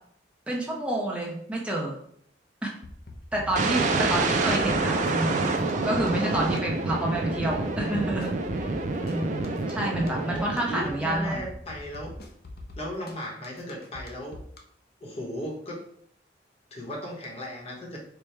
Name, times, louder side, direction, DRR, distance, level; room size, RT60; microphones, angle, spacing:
voice 1, 0.5-2.0 2.6-2.7 3.3-5.4 5.8-11.4, right 1 dB, 5° right, -3 dB, 0.7 m, -29 dB
sound 1, 2.8-14.6, left 2 dB, 55° left, 0.6 m, -43 dB
sound 2, 3.6-11.4, right 3 dB, 45° right, 0.4 m, -28 dB
voice 2, 4.0-4.5 9.9-12.1 12.8-14.4 15.0-15.8 16.7-18.0, left 1 dB, 35° left, -2 dB, 1.0 m, -36 dB
4.5 x 2.2 x 3.2 m, 0.67 s
head